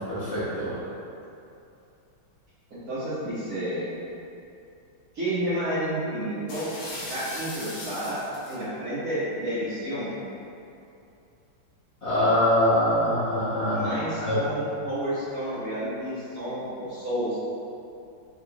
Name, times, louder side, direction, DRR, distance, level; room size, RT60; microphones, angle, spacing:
voice 1, 0.1-0.7 12.0-13.9 14.2-14.4, left 1 dB, 45° left, -14 dB, 0.9 m, -23 dB
voice 2, 2.7-3.9 5.1-6.7 7.1-8.2 8.5-10.2 13.6-17.4, right 1 dB, 50° right, -12 dB, 1.7 m, -30 dB
sound 1, 6.5-8.6, left 2 dB, 75° left, 0.6 m, -38 dB
4.7 x 3.7 x 2.3 m, 2.7 s
omnidirectional pair, 2.1 m